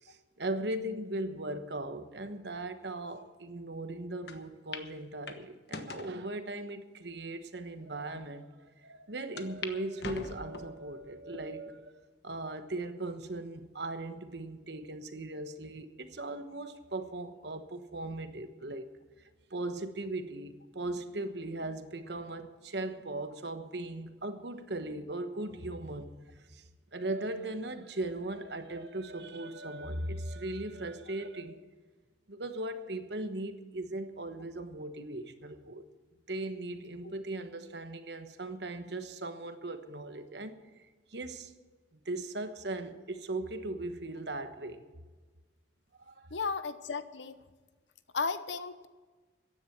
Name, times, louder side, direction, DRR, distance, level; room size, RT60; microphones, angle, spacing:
voice 1, 0.0-12.0 12.2-18.9 19.5-26.1 26.5-26.6 26.9-31.6 32.3-35.8 36.3-40.6 41.1-41.5 41.9-44.8 46.0-46.3, right 2 dB, 65° right, 9 dB, 1.2 m, -38 dB
sound 1, 4.3-4.4 4.7-4.9 5.3-6.1 6.8-6.9 7.6-7.7 8.0-8.1 9.4-9.7 10.0-10.8 11.3-11.8 12.3-12.4 13.5-14.0, left 4 dB, 65° left, 1.2 m, -42 dB
voice 2, 46.3-47.4 48.1-48.9, left 4 dB, 80° left, 12 dB, 0.9 m, -34 dB
15.0 x 10.5 x 6.0 m, 1.3 s
head